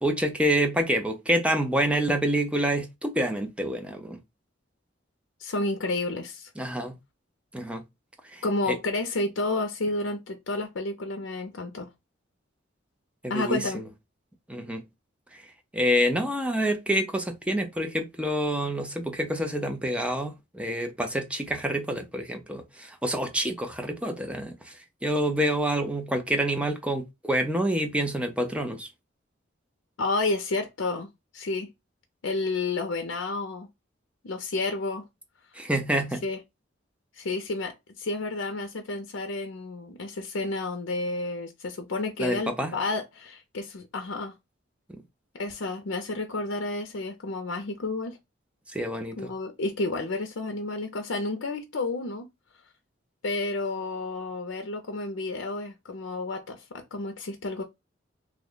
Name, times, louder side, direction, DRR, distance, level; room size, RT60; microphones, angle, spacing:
voice 1, 0.0-4.2 6.6-7.0 7.5-7.8 8.2-8.8 13.2-13.8 14.5-14.8 15.3-15.4 15.7-28.9 35.5-36.2 42.2-42.7 44.9-45.0 48.7-49.3, right 1 dB, 5° right, 0.5 m, -27 dB
voice 2, 5.4-6.5 8.4-11.9 13.3-13.8 30.0-31.1 31.3-31.7 32.2-33.7 34.2-35.1 36.2-36.4 37.2-44.3 45.3-48.2 49.2-52.3 53.2-57.6, left 2 dB, 85° left, 0.6 m, -31 dB
3.0 x 2.1 x 3.7 m
head